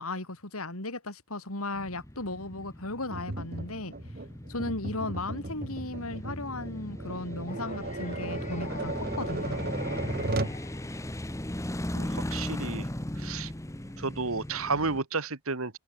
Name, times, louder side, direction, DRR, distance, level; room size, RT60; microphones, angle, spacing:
voice 1, 0.0-3.9 4.5-9.7, left 2 dB, 75° left, 4.8 m, -36 dB
sound 1, 1.7-15.0, left 1 dB, 15° left, 1.1 m, -38 dB
Tap, 3.1-10.6, right 2 dB, 45° right, 1.9 m, -36 dB
sound 2, 7.5-11.6, left 5 dB, 35° left, 4.8 m, -47 dB
voice 2, 11.9-12.9 13.2-13.5 14.0-15.8, right 4 dB, 65° right, 1.8 m, -32 dB
head